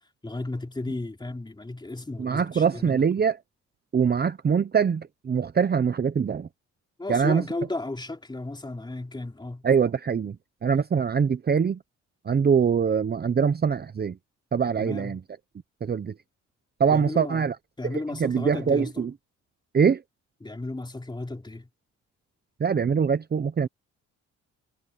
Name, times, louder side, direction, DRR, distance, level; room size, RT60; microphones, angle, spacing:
voice 1, 0.2-3.1 7.0-9.7 14.8-15.2 16.9-17.5 17.8-19.1 20.4-21.7, left 2 dB, 15° left, 3.8 m, -34 dB
voice 2, 2.2-3.4 3.9-6.5 7.1-7.4 9.6-10.4 10.6-11.8 12.2-14.2 14.5-15.2 15.8-16.1 16.8-17.5 18.2-19.1 19.7-20.0 22.6-23.7, right 6 dB, 35° right, 0.9 m, -23 dB
cardioid pair, 90°, 30 cm